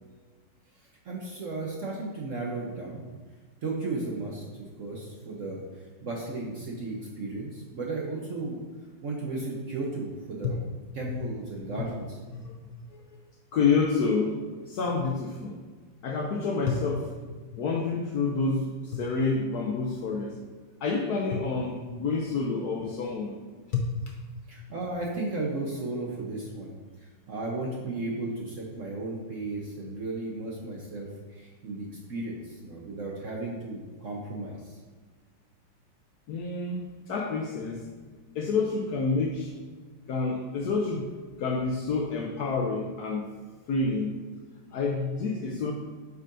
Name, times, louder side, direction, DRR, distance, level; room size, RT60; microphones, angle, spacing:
voice 1, 0.8-3.0 3.6-4.4 4.8-5.6 6.0-8.6 9.0-10.6 10.9-12.2 24.5-34.8, right 2 dB, 55° right, -2 dB, 0.9 m, -35 dB
voice 2, 12.3-13.2 13.5-15.6 16.0-17.1 17.5-20.4 20.8-23.4 23.7-23.9 36.3-37.9 38.3-39.5 40.1-41.1 41.4-43.3 43.7-44.2 44.7-45.7, left 4 dB, 70° left, 2 dB, 1.0 m, -28 dB
8.3 x 5.5 x 2.6 m, 1.4 s
omnidirectional pair, 2.1 m